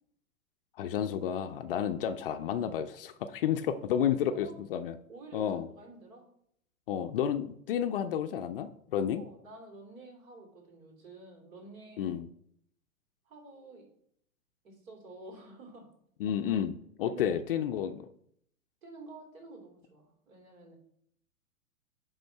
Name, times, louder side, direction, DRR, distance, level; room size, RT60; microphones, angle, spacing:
voice 1, 0.8-5.0 5.3-5.7 6.9-9.2 12.0-12.3 16.2-18.1, left 9 dB, 40° left, 9 dB, 0.5 m, -31 dB
voice 2, 4.1-4.5 5.1-5.5 5.8-6.3 9.1-12.1 13.2-13.9 14.6-15.9 16.4-16.6 17.1-17.3 18.8-20.8, right 2 dB, 65° right, 1 dB, 3.3 m, -50 dB
10.5 x 3.7 x 4.6 m, 0.69 s
hypercardioid pair, 115°, 43 cm